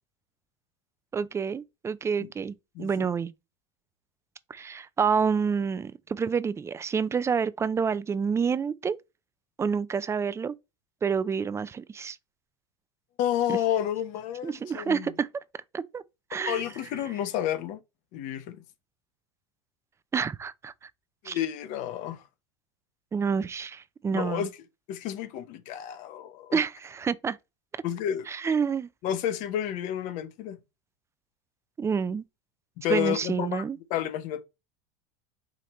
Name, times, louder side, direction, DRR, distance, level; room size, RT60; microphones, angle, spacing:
voice 1, 1.1-3.3 4.5-9.0 9.6-10.5 11.0-12.2 13.5-13.6 14.4-15.3 15.7-16.0 16.3-16.6 20.1-20.7 21.3-21.4 23.1-24.5 26.5-27.4 28.3-28.9 31.8-32.2 32.9-33.8, right 6 dB, 15° right, 0.3 m, -28 dB
voice 2, 2.7-3.1 13.2-15.1 16.4-17.8 18.1-18.6 21.2-22.2 24.1-24.5 24.9-26.6 27.8-28.3 29.0-30.6 32.8-34.4, left 10 dB, 55° left, 0.8 m, -30 dB
5.1 x 2.8 x 3.1 m
hypercardioid pair, 90°, 16 cm